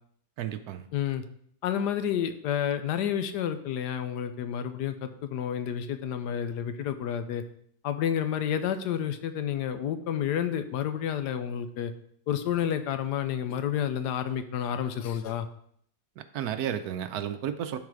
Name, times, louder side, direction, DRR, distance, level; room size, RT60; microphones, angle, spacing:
voice 1, 0.4-0.9 16.2-17.8, right 9 dB, 75° right, 10 dB, 1.1 m, -32 dB
voice 2, 0.9-1.2 1.6-7.4 7.8-11.9 12.3-15.5, left 9 dB, 85° left, 10 dB, 1.3 m, -30 dB
11.5 x 4.0 x 4.8 m, 0.66 s
omnidirectional pair, 1.8 m